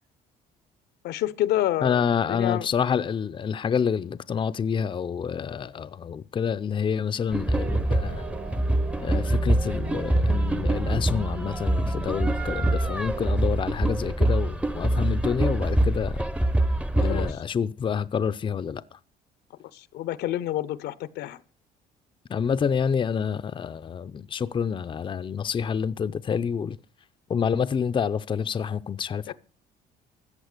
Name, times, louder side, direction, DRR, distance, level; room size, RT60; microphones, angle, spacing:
voice 1, 1.0-2.0 2.3-2.7 17.0-17.4 19.7-21.4 29.3-29.4, left 13 dB, 80° left, 0.9 m, -28 dB
voice 2, 1.8-8.2 9.0-16.3 16.9-19.0 22.3-26.8 27.3-29.3, left 7 dB, 30° left, 0.6 m, -28 dB
sound 1, 7.3-17.3, right 1 dB, 5° right, 0.8 m, -25 dB
sound 2, 7.5-13.3, right 7 dB, 50° right, 2.4 m, -40 dB
14.5 x 8.1 x 6.6 m
cardioid pair, 110°, 17 cm